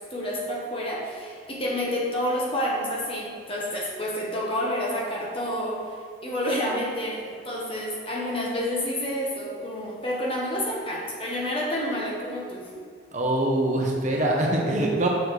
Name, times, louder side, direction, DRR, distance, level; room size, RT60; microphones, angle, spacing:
voice 1, 0.0-12.7, equal, 30° left, -3 dB, 1.1 m, -29 dB
voice 2, 13.1-15.1, right 1 dB, 40° right, -1 dB, 0.8 m, -23 dB
6.7 x 4.2 x 4.7 m, 2.2 s
head